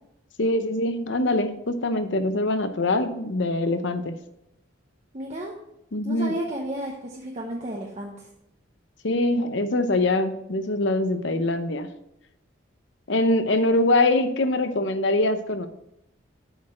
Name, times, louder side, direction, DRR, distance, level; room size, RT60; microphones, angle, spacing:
voice 1, 0.4-4.1 5.9-6.3 9.0-11.9 13.1-15.7, left 2 dB, 65° left, 10 dB, 0.8 m, -23 dB
voice 2, 5.1-5.5 6.0-8.3, right 1 dB, 35° right, -1 dB, 0.9 m, -32 dB
8.0 x 6.5 x 4.3 m, 0.82 s
head